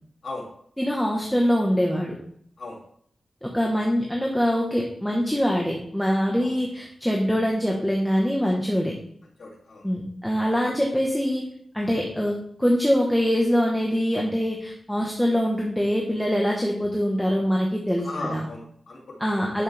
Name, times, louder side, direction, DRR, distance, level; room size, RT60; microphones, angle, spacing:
voice 1, 0.8-2.1 3.4-8.9 9.8-11.4 11.7-18.4 19.2-19.6, equal, 5° left, -1 dB, 1.2 m, -24 dB
voice 2, 9.4-9.9 18.0-19.1 19.4-19.5, left 2 dB, 60° left, -2 dB, 2.6 m, -36 dB
11.0 x 6.4 x 3.4 m, 0.65 s
wide cardioid pair, 155°, 0 cm